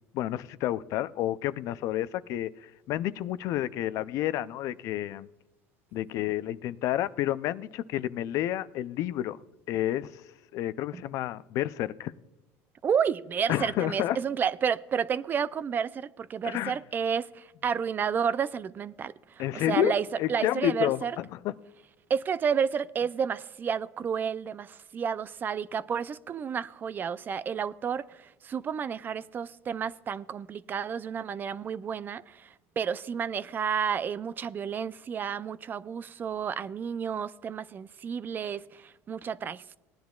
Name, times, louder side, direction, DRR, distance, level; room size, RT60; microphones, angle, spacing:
voice 1, 0.1-5.3 5.9-9.4 9.7-10.2 10.5-12.1 13.5-14.2 16.4-16.8 19.4-19.9 20.2-21.5, left 13 dB, 60° left, 0.4 m, -30 dB
voice 2, 12.8-21.1 22.1-39.8, right 7 dB, 30° right, 0.4 m, -31 dB
18.0 x 10.5 x 2.4 m
supercardioid pair, 115°, 6 cm